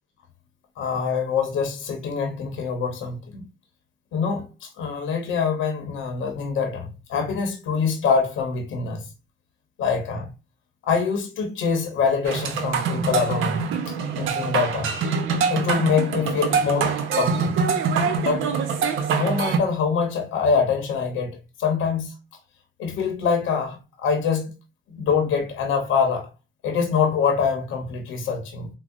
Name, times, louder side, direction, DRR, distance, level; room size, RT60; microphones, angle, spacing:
voice 1, 0.8-3.4 4.1-9.0 9.8-10.3 10.8-13.6 14.2-14.9 15.5-17.5 18.2-18.5 19.1-22.1 22.8-24.5 24.9-26.3 26.6-28.7, left 5 dB, 85° left, 0.8 m, -24 dB
sound 1, 12.2-19.6, right 5 dB, 85° right, 0.6 m, -24 dB
4.7 x 2.0 x 2.5 m
cardioid pair, 90°, 20 cm